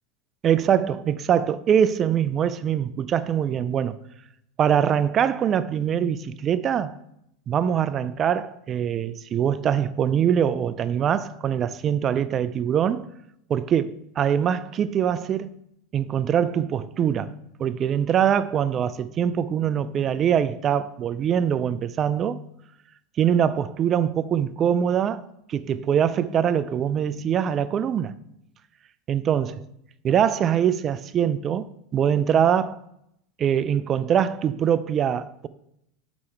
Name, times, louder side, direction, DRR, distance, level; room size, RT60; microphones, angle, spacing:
voice 1, 0.4-4.0 4.6-7.0 7.5-13.1 13.5-15.5 15.9-22.4 23.2-25.2 25.5-28.2 29.1-29.6 30.0-32.8 33.4-35.5, right 9 dB, 35° right, 0.3 m, -23 dB
6.1 x 4.9 x 4.4 m
supercardioid pair, 110°, 0 cm